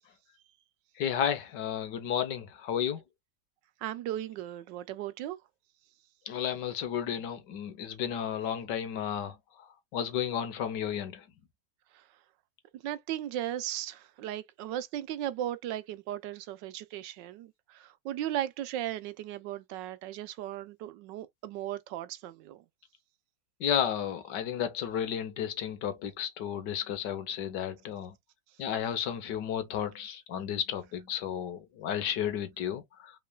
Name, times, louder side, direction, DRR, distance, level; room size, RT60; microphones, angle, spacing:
voice 1, 1.0-3.0 6.3-9.3 9.9-11.2 23.6-28.1 28.6-33.1, left 9 dB, 70° left, 1.4 m, -32 dB
voice 2, 3.8-5.4 12.8-22.6, right 12 dB, 75° right, 1.2 m, -36 dB
5.6 x 3.8 x 2.2 m
omnidirectional pair, 2.1 m